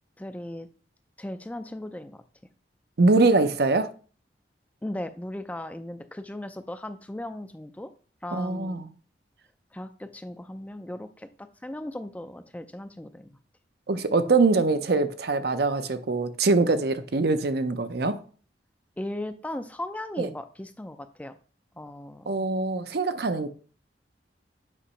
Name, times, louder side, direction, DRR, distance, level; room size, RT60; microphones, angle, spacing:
voice 1, 0.2-0.7 1.2-2.2 4.8-7.9 8.2-8.9 9.7-13.4 19.0-21.4 21.7-22.5, left 1 dB, 10° left, 0.4 m, -37 dB
voice 2, 3.0-3.9 8.3-8.9 13.9-18.2 20.2-20.3 22.3-23.5, right 3 dB, 60° right, 0.6 m, -23 dB
8.4 x 3.0 x 5.5 m
head